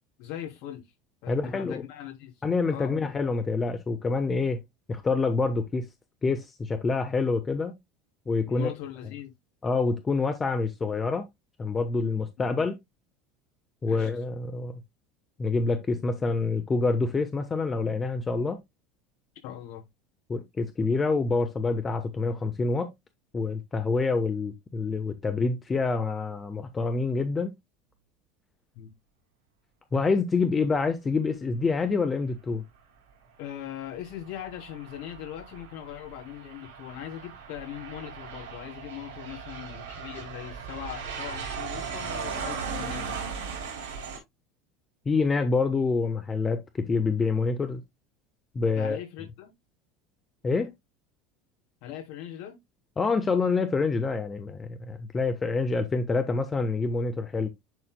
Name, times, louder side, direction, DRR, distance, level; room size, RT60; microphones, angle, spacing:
voice 1, 0.2-0.8 1.2-2.3 2.7-2.9 8.5-9.3 12.4-12.5 13.8-14.1 19.4-19.8 28.7-28.9 33.4-43.2 48.7-49.5 51.8-52.6, left 11 dB, 65° left, 3.3 m, -40 dB
voice 2, 1.3-1.8 2.4-4.6 4.9-5.9 6.2-7.8 8.3-8.7 9.6-11.3 11.6-12.8 13.8-14.8 15.4-18.6 20.3-22.9 23.3-27.5 29.9-32.6 45.0-47.8 48.5-49.0 50.4-50.7 53.0-57.5, left 4 dB, 25° left, 1.0 m, -27 dB
Aircraft, 34.0-44.2, right 6 dB, 80° right, 3.3 m, -38 dB
10.5 x 4.3 x 2.2 m
hypercardioid pair, 80°, 0 cm